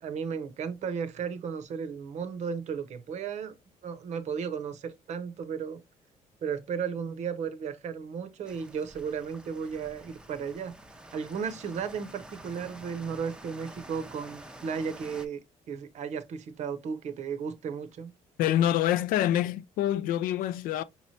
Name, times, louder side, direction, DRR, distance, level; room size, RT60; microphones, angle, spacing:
voice 1, 0.0-3.5 3.8-5.8 6.4-10.7 11.1-15.4 15.7-18.1, right 6 dB, 55° right, 0.7 m, -34 dB
sound 1, 8.5-15.3, right 1 dB, 5° right, 0.5 m, -48 dB
voice 2, 18.4-20.8, left 12 dB, 80° left, 0.4 m, -26 dB
5.2 x 3.1 x 2.7 m
cardioid pair, 125°, 14 cm